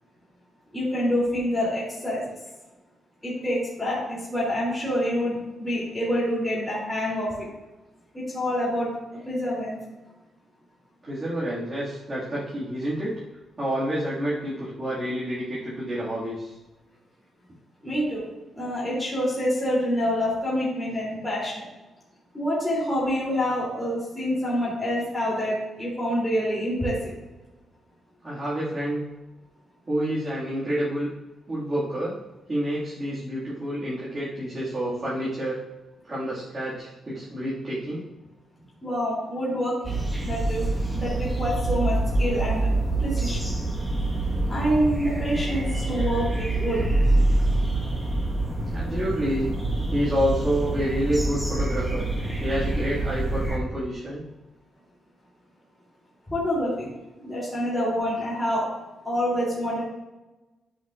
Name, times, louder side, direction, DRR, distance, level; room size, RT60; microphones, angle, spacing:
voice 1, 0.7-2.3 3.2-7.5 8.1-8.9 9.2-9.8 17.8-18.2 18.6-21.6 22.3-27.1 38.8-40.6 40.9-42.7 43.0-43.4 44.5-46.8 56.3-56.9 57.2-58.6 59.0-59.8, equal, 10° left, -7 dB, 3.0 m, -27 dB
voice 2, 11.0-13.2 13.6-16.5 28.2-29.0 29.9-31.1 31.5-32.1 32.5-35.6 36.1-38.0 46.1-46.2 48.7-49.5 49.9-52.0 52.4-54.2, equal, 25° right, -9 dB, 2.0 m, -28 dB
sound 1, 39.8-53.6, right 2 dB, 10° right, 1.4 m, -26 dB
12.5 x 6.0 x 2.5 m, 1.1 s
cardioid pair, 140°, 0 cm